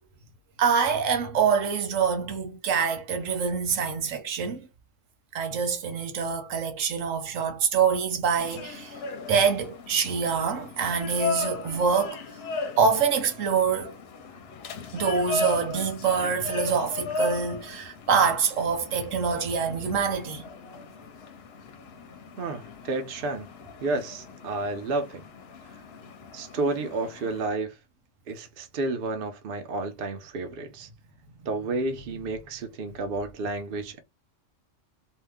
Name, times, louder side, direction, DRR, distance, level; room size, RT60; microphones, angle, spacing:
voice 1, 0.6-4.7 5.3-9.0 9.3-12.2 12.8-13.9 14.9-20.5, right 6 dB, 85° right, 1.2 m, -25 dB
sound 1, 8.4-27.5, left 3 dB, 65° left, 0.8 m, -37 dB
voice 2, 22.4-23.5 23.8-25.2 26.3-27.8 28.3-30.9 31.5-34.0, right 2 dB, 55° right, 0.8 m, -31 dB
2.7 x 2.2 x 3.4 m
omnidirectional pair, 1.3 m